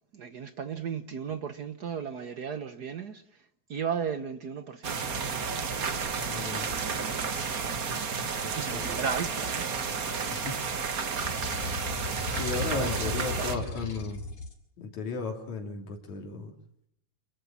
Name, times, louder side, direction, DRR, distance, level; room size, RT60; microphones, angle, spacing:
voice 1, 0.1-3.2 3.7-5.0 8.6-9.7 12.5-13.7, right 6 dB, 80° right, 0.8 m, -35 dB
sound 1, 4.8-13.6, right 5 dB, 40° right, 1.3 m, -32 dB
voice 2, 6.2-6.7 8.4-9.1 10.3-10.7 12.3-14.2 14.8-16.5, left 4 dB, 70° left, 4.3 m, -35 dB
sound 2, 11.2-14.5, left 3 dB, 90° left, 5.4 m, -36 dB
27.5 x 13.5 x 8.8 m
omnidirectional pair, 3.4 m